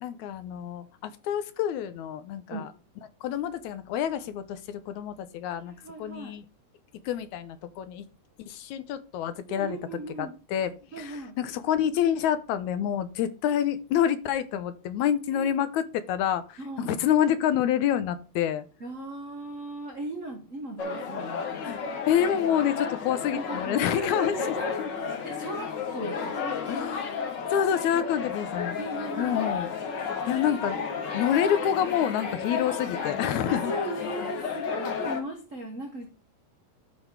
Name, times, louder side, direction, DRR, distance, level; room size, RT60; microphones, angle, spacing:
voice 1, 0.0-2.7 3.2-5.7 6.0-6.4 7.1-8.1 8.5-9.8 10.2-10.7 11.0-18.6 21.6-21.8 22.1-24.4 24.8-24.9 26.7-27.1 27.5-28.8 29.2-29.7 30.3-30.8 31.1-33.7, left 9 dB, 80° left, 12 dB, 2.1 m, -27 dB
voice 2, 5.6-6.3 9.5-10.3 10.9-11.4 15.3-15.5 16.6-17.0 18.8-21.7 23.3-26.9 27.9-28.0 28.8-29.4 30.1-30.5 31.1-31.3 33.4-36.1, right 2 dB, 90° right, 2 dB, 0.6 m, -38 dB
sound 1, 20.8-35.2, left 6 dB, 50° left, 1.4 m, -32 dB
11.5 x 4.2 x 4.6 m, 0.34 s
omnidirectional pair, 3.4 m